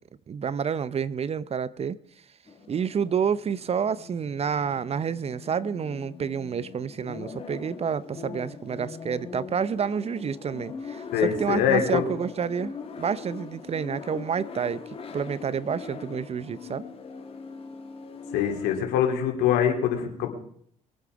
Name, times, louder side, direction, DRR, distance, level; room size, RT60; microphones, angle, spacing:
voice 1, 0.3-2.0 2.7-14.8 15.1-16.8, right 7 dB, 35° right, 0.7 m, -29 dB
sound 1, 2.5-18.8, left 5 dB, 35° left, 3.0 m, -41 dB
voice 2, 11.1-12.0 18.3-20.3, left 9 dB, 70° left, 3.0 m, -24 dB
22.5 x 8.4 x 4.8 m
hypercardioid pair, 55°, 17 cm